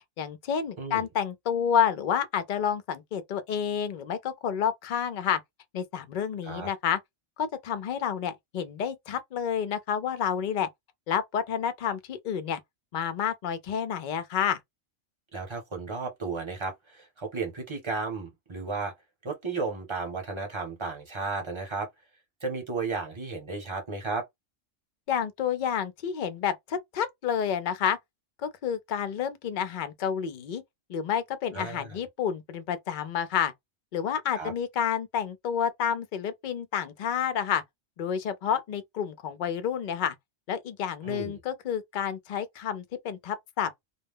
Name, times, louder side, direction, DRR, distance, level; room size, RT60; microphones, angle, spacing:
voice 1, 0.2-5.4 5.7-7.0 7.4-10.7 11.1-12.6 12.9-14.6 25.1-28.0 28.4-30.6 30.9-33.5 33.9-37.6 38.0-40.2 40.5-43.7, left 8 dB, 55° left, 0.5 m, -29 dB
voice 2, 15.3-18.9 19.2-21.9 22.4-24.3 31.5-32.0 34.4-34.5 41.0-41.4, right 4 dB, 30° right, 0.8 m, -34 dB
2.2 x 2.1 x 3.5 m
omnidirectional pair, 1.2 m